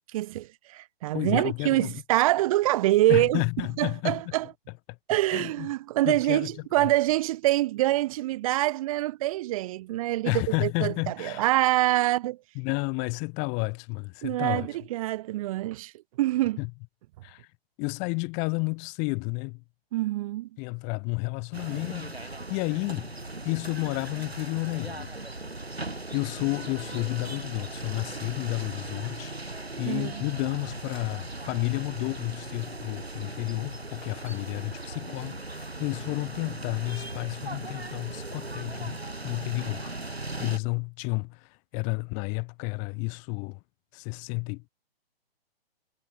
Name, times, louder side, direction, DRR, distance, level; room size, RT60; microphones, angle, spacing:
voice 1, 0.0-3.4 3.8-4.5 5.1-10.3 10.6-12.4 14.2-15.9 16.2-16.6 19.9-20.5 29.9-30.2, right 16 dB, 35° right, 3.9 m, -25 dB
voice 2, 1.1-1.9 3.1-4.2 4.9-5.0 5.3-5.7 6.0-6.5 6.8-6.9 10.2-11.4 12.5-14.7 16.6-16.7 17.2-17.5 17.8-19.6 20.6-23.1 23.4-25.1 26.1-39.0 39.2-39.9 40.4-43.6 43.9-44.7, left 36 dB, 25° left, 2.8 m, -31 dB
sound 1, 21.5-40.6, right 2 dB, 90° right, 2.1 m, -38 dB
figure-of-eight pair, 130°, 30 cm